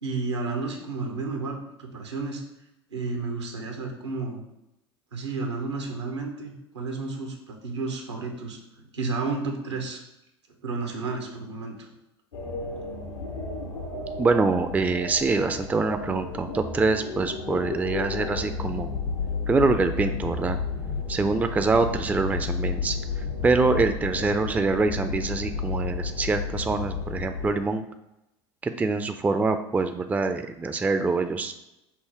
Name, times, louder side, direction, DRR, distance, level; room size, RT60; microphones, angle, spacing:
voice 1, 0.0-2.4 2.9-4.4 5.1-10.0 10.6-11.9, right 3 dB, 90° right, 2 dB, 0.9 m, -32 dB
sound 1, 12.3-27.5, left 4 dB, 85° left, 0.8 m, -32 dB
voice 2, 14.2-18.9 19.5-20.6 21.1-27.9 28.6-31.5, right 3 dB, 10° right, 8 dB, 0.3 m, -25 dB
5.6 x 2.1 x 4.6 m, 0.89 s
hypercardioid pair, 80°, 14 cm